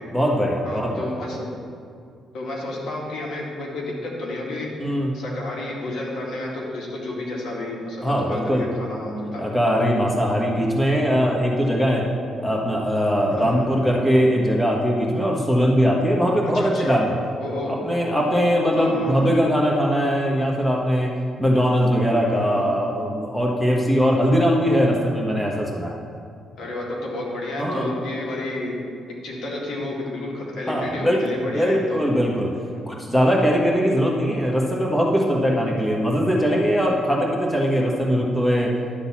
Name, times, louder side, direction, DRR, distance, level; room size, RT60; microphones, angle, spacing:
voice 1, 0.1-1.1 4.8-5.1 8.0-8.7 9.4-12.0 12.4-17.1 17.7-21.1 21.4-25.9 27.6-27.9 30.7-32.5 32.9-38.7, equal, 5° left, -2 dB, 1.4 m, -21 dB
voice 2, 0.6-1.5 2.3-4.9 5.1-9.5 13.3-13.7 16.5-17.0 17.4-17.8 18.7-19.3 22.3-22.6 26.6-28.7 29.2-32.0 32.7-32.9, left 1 dB, 70° left, -3 dB, 2.1 m, -31 dB
11.5 x 4.0 x 7.3 m, 2.3 s
cardioid pair, 90°, 0 cm